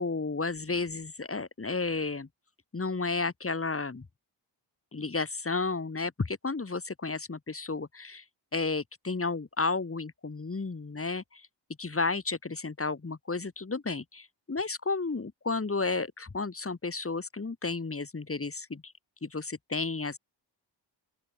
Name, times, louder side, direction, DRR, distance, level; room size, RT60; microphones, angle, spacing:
voice 1, 0.0-2.3 2.7-4.1 4.9-8.2 8.5-11.4 11.8-14.2 14.5-18.9 19.2-20.2, left 3 dB, 30° left, 5.5 m, -32 dB
open air
wide cardioid pair, 145°, 44 cm